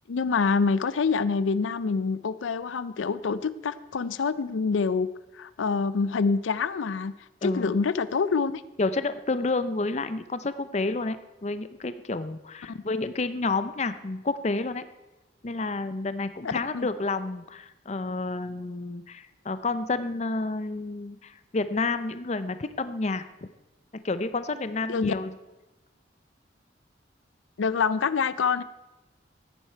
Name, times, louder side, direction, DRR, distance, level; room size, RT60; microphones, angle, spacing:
voice 1, 0.1-5.1 5.3-7.1 7.4-8.6 12.7-12.8 16.7-16.9 24.9-25.1 27.6-28.6, left 5 dB, 90° left, 15 dB, 0.5 m, -26 dB
voice 2, 7.4-7.8 8.8-14.9 15.4-23.2 24.0-25.3, left 3 dB, 35° left, 12 dB, 0.5 m, -30 dB
14.5 x 10.0 x 4.5 m, 1.0 s
head